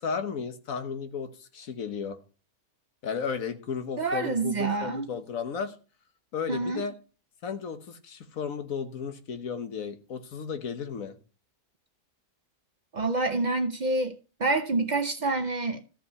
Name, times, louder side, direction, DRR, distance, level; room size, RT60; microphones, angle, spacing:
voice 1, 0.0-2.2 3.0-5.7 6.3-6.9 7.4-11.2, left 6 dB, 60° left, 1.4 m, -34 dB
voice 2, 4.0-5.1 6.5-6.8 12.9-15.8, right 3 dB, 80° right, 0.4 m, -27 dB
13.5 x 5.5 x 5.5 m
omnidirectional pair, 1.7 m